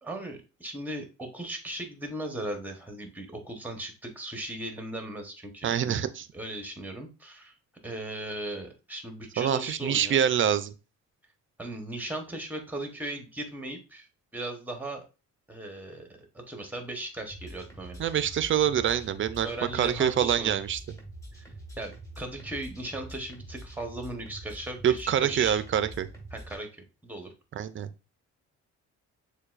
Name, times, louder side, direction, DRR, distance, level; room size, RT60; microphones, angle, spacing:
voice 1, 0.0-6.0 6.3-7.5 7.8-10.2 11.6-14.1 14.3-15.0 15.5-16.1 16.3-18.2 19.4-20.6 21.3-25.6 26.3-27.3, right 1 dB, 5° right, 4 dB, 1.0 m, -37 dB
voice 2, 5.6-6.2 9.4-10.7 18.0-19.5 19.7-20.8 24.8-26.1 27.6-27.9, right 9 dB, 40° right, 13 dB, 0.4 m, -25 dB
sound 1, 17.2-26.6, right 1 dB, 10° left, 1.9 m, -45 dB
6.6 x 2.3 x 2.4 m, 0.31 s
cardioid pair, 90°, 30 cm